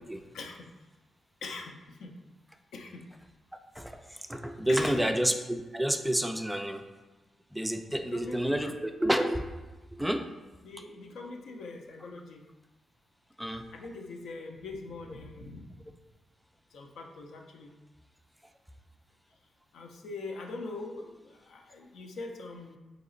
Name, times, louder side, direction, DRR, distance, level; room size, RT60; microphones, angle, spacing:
voice 1, 0.3-0.7 1.4-2.1 2.7-3.0 4.7-5.0 8.1-8.6 10.6-12.4 13.7-15.7 16.7-17.7 19.7-22.8, left 3 dB, 85° left, 2 dB, 0.6 m, -42 dB
voice 2, 3.8-6.9 7.5-9.5 10.0-10.3 13.4-13.7, equal, 5° right, 6 dB, 0.3 m, -29 dB
4.1 x 2.9 x 3.8 m, 1.2 s
cardioid pair, 100°, 0 cm